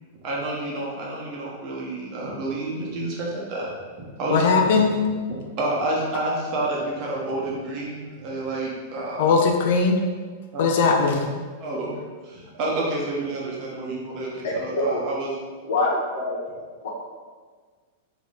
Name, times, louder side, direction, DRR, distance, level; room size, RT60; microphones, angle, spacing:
voice 1, 0.2-3.7 4.2-4.8 5.3-9.4 10.5-10.7 11.6-11.9 12.2-15.3, right 2 dB, 35° right, -4 dB, 0.9 m, -29 dB
voice 2, 4.3-4.9 9.2-10.0 10.6-11.2, left 4 dB, 55° left, 3 dB, 0.4 m, -19 dB
voice 3, 14.4-15.0 15.7-16.4 16.8-16.9, left 2 dB, 85° left, -4 dB, 1.1 m, -25 dB
4.0 x 2.9 x 3.2 m, 1.5 s
supercardioid pair, 165°, 0 cm